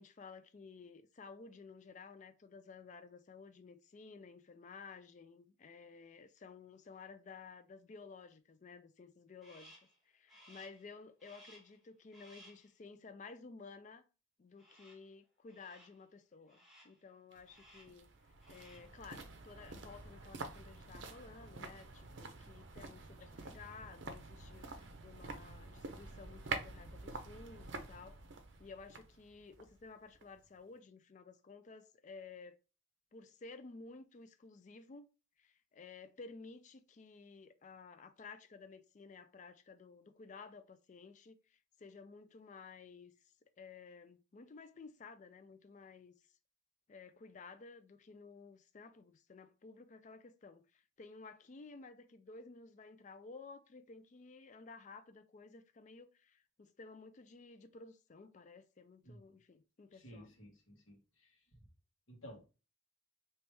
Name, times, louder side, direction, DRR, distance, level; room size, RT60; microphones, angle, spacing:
voice 1, 0.0-9.7 10.1-14.1 14.4-18.1 18.5-28.2 28.6-32.6 33.1-35.1 35.4-46.1 46.9-60.3, left 4 dB, 40° left, 0.4 m, -54 dB
Crow, 9.4-10.0 10.3-10.9 11.2-11.8 12.1-12.7 14.6-15.1 15.5-16.0 16.5-17.0 17.4-18.0 18.3-19.0, equal, ahead, 1.3 m, -61 dB
sound 1, 17.3-30.5 30.8-30.9, right 3 dB, 65° right, 0.6 m, -48 dB
voice 2, 59.9-61.4 62.1-62.5, equal, 90° left, 1.5 m, -55 dB
3.1 x 3.0 x 3.3 m
head